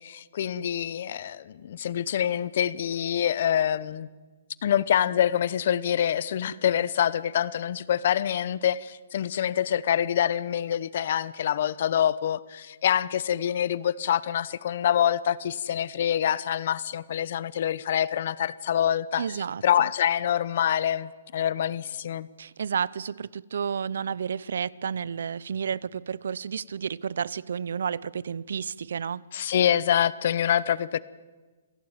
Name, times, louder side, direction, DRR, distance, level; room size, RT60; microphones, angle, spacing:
voice 1, 0.0-4.1 4.6-19.2 19.6-22.3 29.3-31.0, left 10 dB, 50° left, 1.0 m, -26 dB
voice 2, 19.2-19.9 22.4-29.2, right 7 dB, 75° right, 0.7 m, -31 dB
27.5 x 17.0 x 9.0 m
hypercardioid pair, 165°, 0 cm